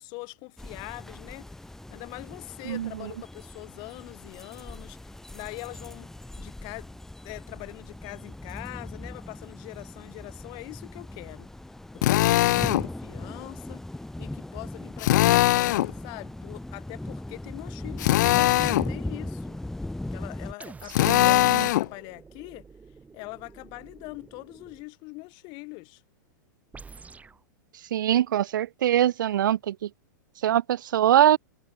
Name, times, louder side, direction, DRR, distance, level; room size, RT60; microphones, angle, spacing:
voice 1, 0.0-1.5 1.9-5.0 5.3-6.1 6.4-6.9 7.2-11.5 11.9-13.8 14.2-19.6 20.1-22.7 23.1-26.0, left 28 dB, 45° left, 1.5 m, -42 dB
sound 1, 0.6-20.5, left 1 dB, 5° left, 0.9 m, -39 dB
voice 2, 2.7-3.1 21.1-21.7 27.9-29.9 30.4-31.4, right 11 dB, 80° right, 0.4 m, -23 dB
Drill, 12.0-12.9 15.0-15.9 18.0-18.9 20.9-21.9, left 15 dB, 65° left, 0.4 m, -21 dB
sound 2, 20.6-24.9 26.7-27.4, right 4 dB, 15° right, 3.2 m, -49 dB
hypercardioid pair, 115°, 11 cm